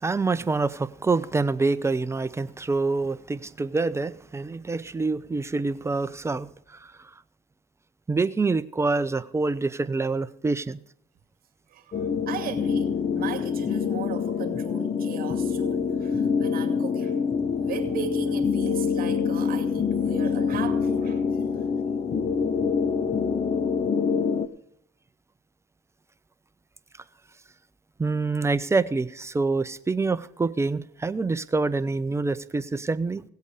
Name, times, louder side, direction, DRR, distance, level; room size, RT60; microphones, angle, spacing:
voice 1, 0.0-6.9 8.1-10.8 28.0-33.2, right 3 dB, 15° right, 0.8 m, -26 dB
voice 2, 11.7-17.2 17.6-21.2 21.5-21.7, right 10 dB, 55° right, 2.4 m, -38 dB
sound 1, 11.9-24.5, left 6 dB, 35° left, 1.1 m, -26 dB
17.0 x 8.2 x 4.9 m
supercardioid pair, 75°, 18 cm